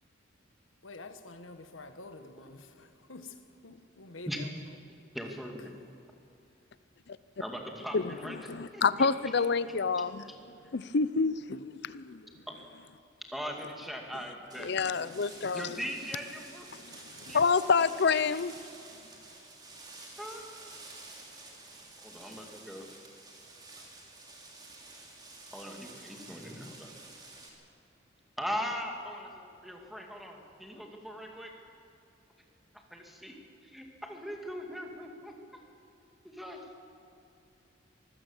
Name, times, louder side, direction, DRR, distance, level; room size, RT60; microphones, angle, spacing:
voice 1, 0.8-3.4 3.6-4.5, left 2 dB, 85° left, 1.4 m, -47 dB
voice 2, 5.1-5.8 7.4-8.4 8.7-9.3 12.5-12.6 13.3-15.0 15.5-16.7 17.3-17.4 18.1-18.2 20.2-20.7 22.0-22.9 25.5-26.9 28.4-31.5 32.9-33.3 33.6-35.3 36.2-36.7, equal, ahead, 2.1 m, -40 dB
voice 3, 7.9-10.1 10.7-12.2 14.6-15.7 16.9-17.0 17.3-18.5, left 5 dB, 55° left, 0.6 m, -28 dB
sound 1, 14.5-27.5, right 2 dB, 20° right, 3.1 m, -50 dB
24.0 x 15.0 x 7.2 m
head